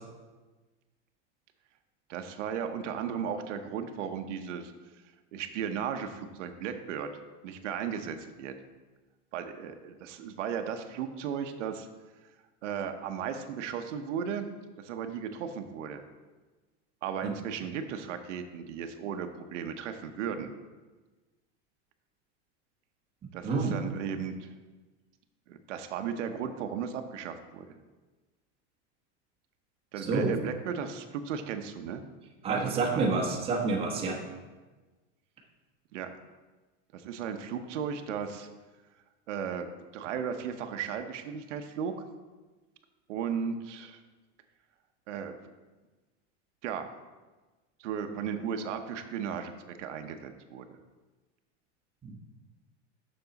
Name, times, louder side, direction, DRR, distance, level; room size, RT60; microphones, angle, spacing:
voice 1, 2.1-4.7 5.3-7.1 7.4-8.5 9.3-11.9 12.6-14.5 14.8-16.0 17.0-20.5 23.3-24.5 25.5-27.7 29.9-32.0 32.5-33.1 35.9-36.1 36.9-38.5 39.3-39.7 39.9-41.9 43.1-44.0 45.1-45.4 46.6-46.9 47.8-50.8, right 7 dB, 90° right, 7 dB, 0.8 m, -35 dB
voice 2, 23.4-23.7 30.0-30.3 32.4-34.2 52.0-52.1, right 3 dB, 15° right, -1 dB, 0.9 m, -28 dB
7.0 x 6.2 x 3.9 m, 1.3 s
supercardioid pair, 160°, 35 cm